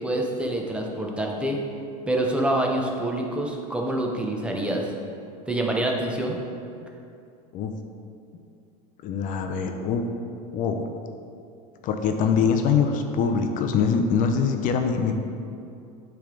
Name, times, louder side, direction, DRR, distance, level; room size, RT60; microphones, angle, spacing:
voice 1, 0.0-1.6 2.1-4.8 5.5-6.4, right 1 dB, 5° right, 0 dB, 0.7 m, -26 dB
voice 2, 9.0-10.0 10.5-10.8 11.8-15.2, left 6 dB, 45° left, 5 dB, 0.5 m, -23 dB
8.3 x 3.4 x 3.8 m, 2.6 s
supercardioid pair, 120°, 20 cm